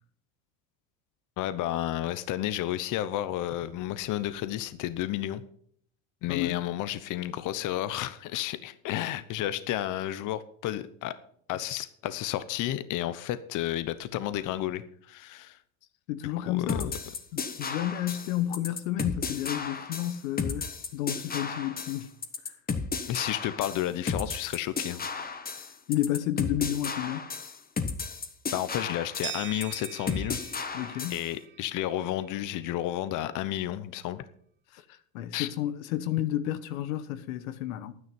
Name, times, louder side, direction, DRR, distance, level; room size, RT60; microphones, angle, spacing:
voice 1, 1.4-5.4 6.2-11.1 11.5-15.6 16.4-17.0 23.1-25.0 28.5-30.4 31.1-34.3 35.3-35.5, left 13 dB, 50° left, 0.9 m, -32 dB
voice 2, 6.3-6.7 16.1-16.9 17.3-22.1 25.9-27.3 30.7-31.2 34.7-34.8 35.1-37.9, left 12 dB, 85° left, 1.1 m, -31 dB
sound 1, 16.7-31.3, left 5 dB, 20° left, 1.3 m, -34 dB
sound 2, 29.2-32.2, right 9 dB, 30° right, 0.7 m, -42 dB
11.0 x 9.7 x 5.3 m
supercardioid pair, 115°, 40 cm